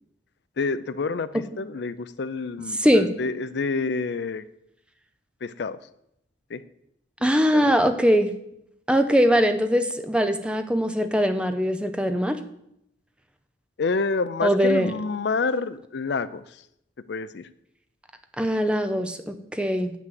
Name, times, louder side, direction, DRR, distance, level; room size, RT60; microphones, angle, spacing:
voice 1, 0.6-4.4 5.4-5.8 6.5-6.6 7.6-7.7 13.8-16.4 17.1-17.5, left 4 dB, 60° left, 15 dB, 0.4 m, -28 dB
voice 2, 2.7-3.1 7.2-8.3 8.9-12.4 14.4-14.9 18.4-19.9, equal, 5° right, 8 dB, 0.6 m, -21 dB
7.7 x 6.1 x 7.6 m, 0.77 s
head